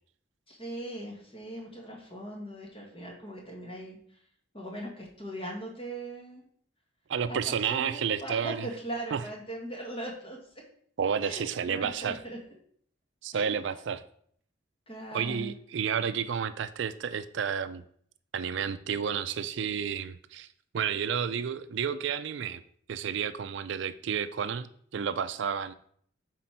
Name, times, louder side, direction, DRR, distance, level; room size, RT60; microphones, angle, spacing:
voice 1, 0.5-4.0 4.5-6.4 7.3-10.4 11.2-12.4 13.3-13.6 14.9-15.5, right 1 dB, 25° left, -1 dB, 1.7 m, -40 dB
voice 2, 7.1-8.7 9.1-9.2 11.0-12.2 13.2-14.0 15.1-17.8 18.3-20.5 20.7-22.6 22.9-25.7, right 7 dB, 65° right, 12 dB, 0.4 m, -31 dB
8.1 x 4.3 x 4.4 m, 0.63 s
head